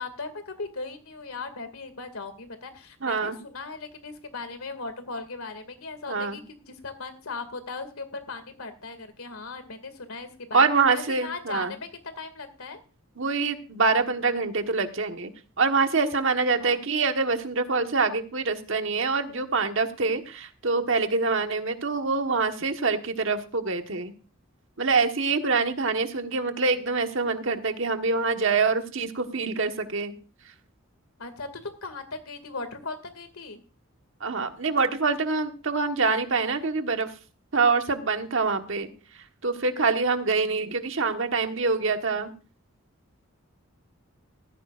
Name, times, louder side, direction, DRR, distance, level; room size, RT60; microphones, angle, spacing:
voice 1, 0.0-10.6 10.9-12.8 16.6-16.8 31.2-33.6, left 3 dB, 80° left, 9 dB, 2.3 m, -38 dB
voice 2, 3.0-3.4 6.1-6.4 10.5-11.7 13.2-15.3 15.6-24.1 24.8-30.1 34.2-37.1 37.5-38.9 39.4-42.3, right 4 dB, 60° right, 6 dB, 1.4 m, -25 dB
17.0 x 14.5 x 2.5 m, 0.35 s
head